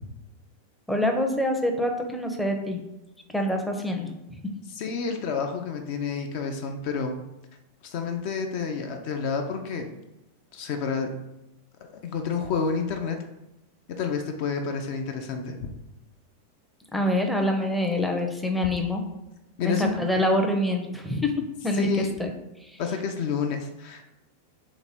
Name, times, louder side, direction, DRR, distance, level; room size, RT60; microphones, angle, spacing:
voice 1, 0.9-2.8 3.3-4.1 16.9-19.0 19.6-21.9 22.2-22.3, left 1 dB, ahead, 2 dB, 0.5 m, -25 dB
voice 2, 4.7-7.2 7.8-9.9 10.5-11.1 12.0-13.2 14.0-15.6 19.6-19.9 21.7-22.1 22.8-24.0, left 5 dB, 45° left, 4 dB, 0.4 m, -29 dB
3.4 x 3.0 x 4.2 m, 0.94 s
figure-of-eight pair, 90°, 0 cm